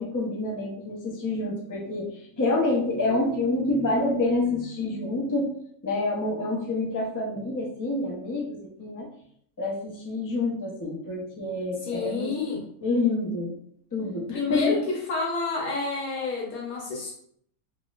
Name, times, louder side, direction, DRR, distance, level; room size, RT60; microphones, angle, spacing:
voice 1, 0.0-5.5 5.8-9.1 9.6-12.5 12.8-13.5 13.9-14.8, left 2 dB, 25° left, -3 dB, 0.4 m, -27 dB
voice 2, 11.9-12.6 14.3-14.8 15.1-17.1, left 4 dB, 75° left, -3 dB, 1.3 m, -29 dB
3.9 x 2.9 x 2.3 m, 0.66 s
omnidirectional pair, 1.6 m